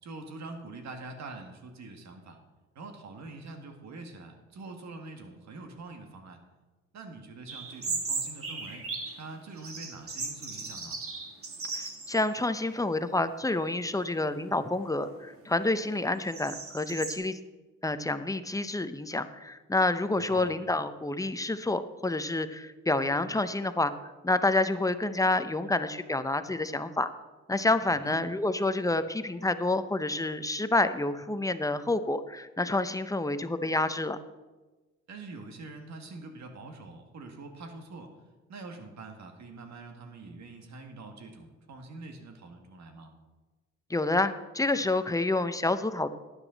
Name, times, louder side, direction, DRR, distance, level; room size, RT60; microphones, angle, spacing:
voice 1, 0.0-2.4 2.8-6.4 6.9-11.0 20.2-20.6 27.9-28.2 35.1-38.1 38.5-43.1, right 3 dB, 65° right, 4 dB, 2.0 m, -45 dB
sound 1, 7.5-9.2 9.6-12.3 12.6-12.7 13.5-13.9 14.3-17.1, right 4 dB, 45° right, 2.0 m, -37 dB
voice 2, 11.7-17.4 17.8-27.1 27.5-34.2 43.9-46.1, left 2 dB, 10° left, 11 dB, 0.6 m, -28 dB
12.0 x 9.8 x 4.0 m, 1.2 s
cardioid pair, 90°, 30 cm